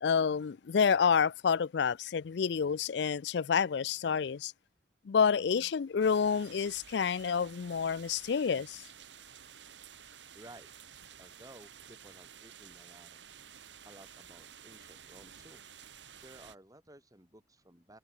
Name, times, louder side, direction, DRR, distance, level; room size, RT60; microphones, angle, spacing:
voice 1, 0.0-4.5 5.1-8.8, left 6 dB, 65° left, 0.4 m, -29 dB
sound 1, 6.0-16.6, right 8 dB, 75° right, 2.4 m, -53 dB
voice 2, 10.3-10.7 11.2-13.2 13.8-15.6 16.2-18.0, right 1 dB, 20° right, 5.9 m, -55 dB
head